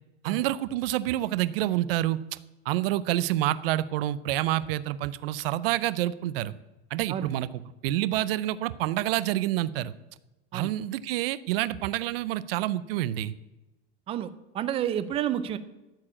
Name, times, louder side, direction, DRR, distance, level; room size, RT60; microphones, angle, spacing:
voice 1, 0.2-2.2 2.7-6.5 6.9-7.5 7.8-9.9 10.5-13.3, right 14 dB, 75° right, 16 dB, 0.6 m, -28 dB
voice 2, 7.1-7.7 10.5-10.7 14.1-15.6, right 10 dB, 20° right, 14 dB, 0.4 m, -31 dB
13.0 x 4.8 x 8.7 m, 1.0 s
supercardioid pair, 165°, 29 cm